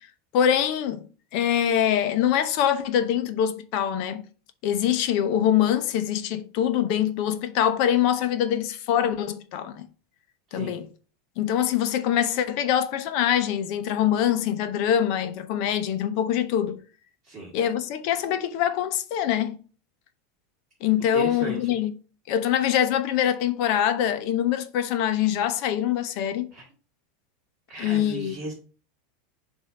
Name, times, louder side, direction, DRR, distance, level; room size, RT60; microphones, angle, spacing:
voice 1, 0.3-1.1 1.3-4.2 4.6-9.9 10.5-10.9 11.4-16.8 17.5-19.6 20.8-21.9 22.3-26.5 27.8-28.4, left 10 dB, 50° left, 0.7 m, -24 dB
voice 2, 10.5-10.8 17.2-17.5 21.1-21.7 26.5-26.6 27.7-28.5, right 2 dB, 20° right, 1.8 m, -36 dB
7.6 x 2.7 x 5.1 m
supercardioid pair, 160°, 0 cm